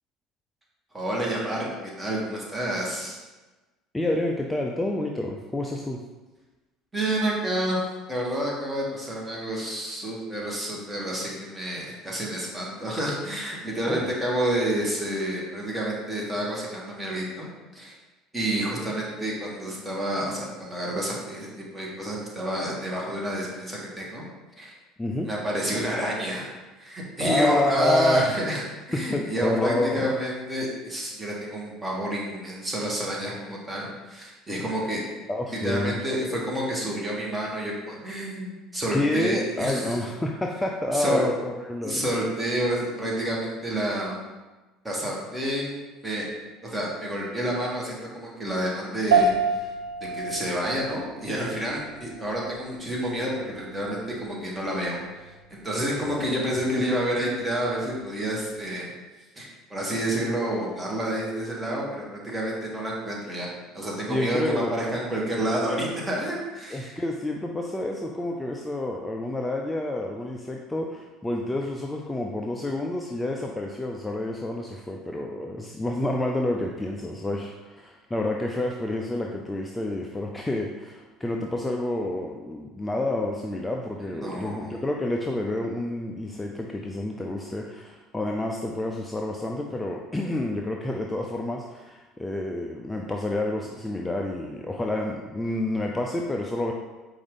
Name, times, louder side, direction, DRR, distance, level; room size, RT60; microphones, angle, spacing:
voice 1, 0.9-3.2 6.9-7.8 8.1-17.5 17.7-17.9 18.3-24.2 24.6-24.7 25.2-26.5 26.8-35.0 35.5-40.0 40.9-41.2 41.8-44.2 44.8-46.3 46.6-49.7 50.1-55.0 55.5-58.9 59.3-63.5 63.7-67.0 84.1-84.8, right 1 dB, 20° right, -4 dB, 1.4 m, -29 dB
voice 2, 3.9-6.0 13.8-14.1 25.0-25.3 27.2-28.3 29.1-30.1 35.3-36.0 38.9-42.0 56.0-56.5 64.1-64.7 66.7-96.7, left 1 dB, 15° left, 1 dB, 0.4 m, -29 dB
sound 1, 49.1-58.7, right 4 dB, 80° right, 0.4 m, -30 dB
4.8 x 2.6 x 3.6 m, 1.2 s
hypercardioid pair, 65°, 0 cm